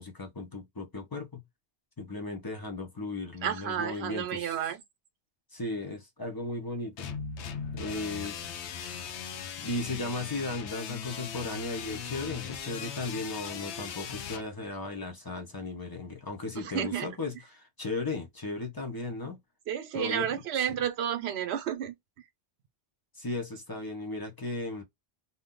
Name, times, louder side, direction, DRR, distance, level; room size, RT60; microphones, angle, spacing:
voice 1, 0.0-1.4 2.0-4.6 5.5-7.1 7.7-8.5 9.6-19.4 19.9-20.3 20.6-20.7 23.1-24.8, left 2 dB, 30° left, 0.5 m, -36 dB
voice 2, 3.4-4.8 16.6-17.1 19.7-21.9, right 9 dB, 75° right, 0.9 m, -31 dB
sound 1, 7.0-14.4, left 7 dB, 90° left, 0.9 m, -39 dB
2.7 x 2.1 x 3.6 m
omnidirectional pair, 1.1 m